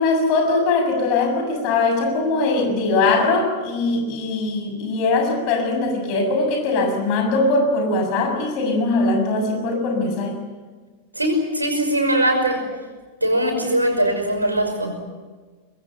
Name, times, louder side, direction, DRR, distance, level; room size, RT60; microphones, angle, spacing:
voice 1, 0.0-10.4, left 3 dB, 45° left, 4 dB, 6.9 m, -21 dB
voice 2, 11.1-12.7 13.2-15.0, right 1 dB, 85° right, 4 dB, 5.8 m, -21 dB
25.0 x 21.5 x 9.0 m, 1.4 s
figure-of-eight pair, 90°, 0 cm